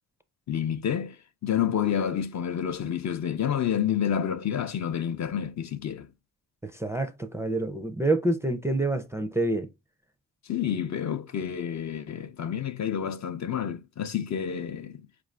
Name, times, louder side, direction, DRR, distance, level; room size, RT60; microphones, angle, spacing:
voice 1, 0.5-6.1 10.4-15.0, left 9 dB, 50° left, 0.5 m, -29 dB
voice 2, 6.6-9.7, right 2 dB, 10° right, 0.4 m, -27 dB
4.8 x 2.6 x 3.2 m
cardioid pair, 75°, 35 cm